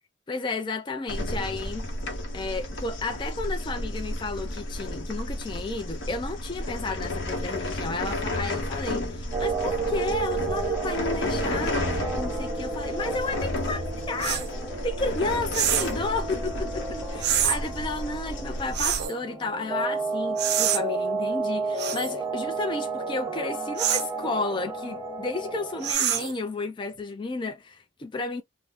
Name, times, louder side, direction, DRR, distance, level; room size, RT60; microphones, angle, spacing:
voice 1, 0.3-1.8 2.3-14.4 14.8-28.4, left 3 dB, 25° left, 0.3 m, -32 dB
sound 1, 1.1-19.1, left 1 dB, 65° left, 0.8 m, -32 dB
sound 2, 9.3-25.9, right 4 dB, 10° right, 0.8 m, -32 dB
sound 3, 14.2-14.5 15.5-16.0 17.2-17.6 18.7-19.1 20.4-20.8 21.8-22.1 23.8-24.1 25.8-26.4, right 10 dB, 55° right, 0.5 m, -25 dB
2.6 x 2.0 x 3.4 m
head